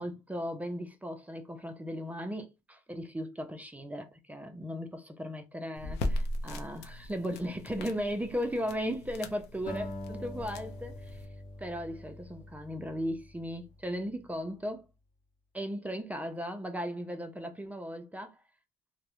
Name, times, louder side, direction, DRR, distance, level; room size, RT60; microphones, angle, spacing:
voice 1, 0.0-11.3 11.6-14.9 15.5-18.4, equal, 10° right, 0.4 m, -37 dB
sound 1, 5.8-11.3, left 1 dB, 80° left, 0.5 m, -38 dB
Acoustic guitar, 9.7-14.1, left 1 dB, 50° left, 0.8 m, -44 dB
2.3 x 2.0 x 2.9 m
cardioid pair, 110°, 17 cm